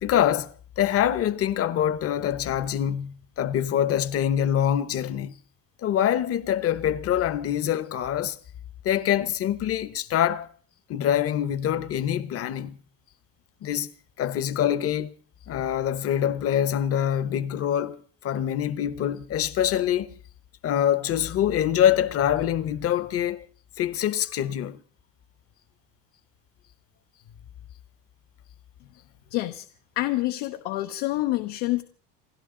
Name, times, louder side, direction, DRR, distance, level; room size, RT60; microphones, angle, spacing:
voice 1, 0.0-5.3 5.8-8.4 8.8-10.5 10.9-12.8 13.6-13.9 14.2-15.1 15.5-20.1 20.6-23.5 23.8-24.8, left 10 dB, 40° left, 1.0 m, -25 dB
voice 2, 29.3-29.7 30.0-31.8, left 17 dB, 85° left, 1.1 m, -27 dB
28.5 x 12.0 x 3.8 m
cardioid pair, 140°, 38 cm